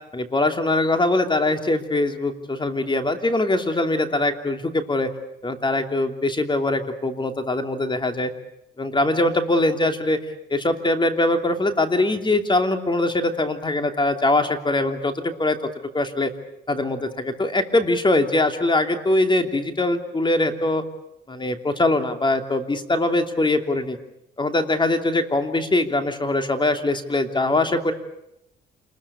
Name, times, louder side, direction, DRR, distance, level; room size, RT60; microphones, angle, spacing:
voice 1, 0.1-5.1 5.4-8.3 8.8-10.2 10.5-15.6 15.9-16.3 16.7-20.8 21.3-24.0 24.4-27.9, left 2 dB, 25° left, 6 dB, 2.9 m, -22 dB
28.0 x 21.0 x 8.6 m, 0.84 s
cardioid pair, 90°, 20 cm